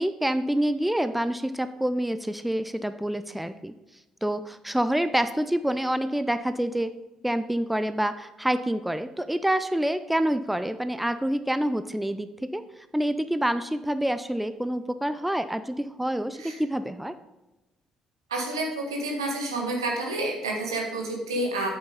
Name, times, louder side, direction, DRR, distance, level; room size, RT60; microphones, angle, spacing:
voice 1, 0.0-3.7 4.2-6.9 7.2-12.6 12.9-17.2, right 1 dB, 5° right, 11 dB, 0.5 m, -27 dB
voice 2, 18.3-21.7, right 2 dB, 85° right, -1 dB, 1.6 m, -29 dB
8.4 x 7.2 x 3.9 m, 1.0 s
figure-of-eight pair, 45°, 2 cm